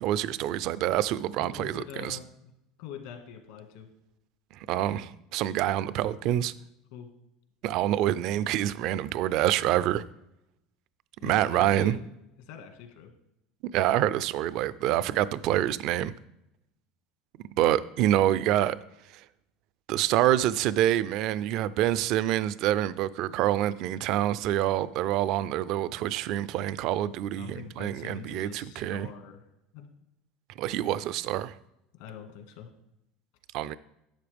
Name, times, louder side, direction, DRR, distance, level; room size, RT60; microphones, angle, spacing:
voice 1, 0.0-2.2 4.7-6.5 7.6-10.0 11.2-12.0 13.7-16.1 17.6-18.8 19.9-29.1 30.6-31.5 33.5-33.8, right 12 dB, 55° right, 0.4 m, -26 dB
voice 2, 1.4-2.5 2.8-3.9 6.9-7.1 11.2-12.0 12.4-13.1 27.3-29.4 29.7-29.9 32.0-32.7, left 8 dB, 75° left, 1.8 m, -43 dB
11.5 x 7.7 x 3.5 m
supercardioid pair, 140°, 0 cm